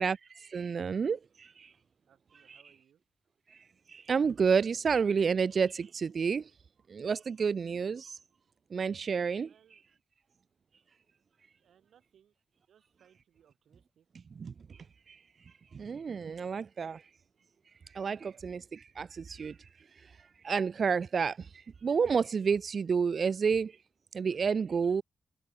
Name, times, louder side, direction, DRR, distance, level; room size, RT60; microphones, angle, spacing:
voice 1, 0.0-1.7 2.5-2.6 3.5-3.6 3.9-6.5 6.9-8.2 8.7-9.8 14.4-14.8 15.1-15.2 15.7-17.0 17.9-19.6 20.4-23.8 24.1-25.0, right 6 dB, 45° right, 0.3 m, -30 dB
voice 2, 2.1-3.0 9.5-9.8 11.6-12.3 12.7-14.1 18.2-18.5, right 9 dB, 85° right, 7.1 m, -66 dB
wide cardioid pair, 155°, 0 cm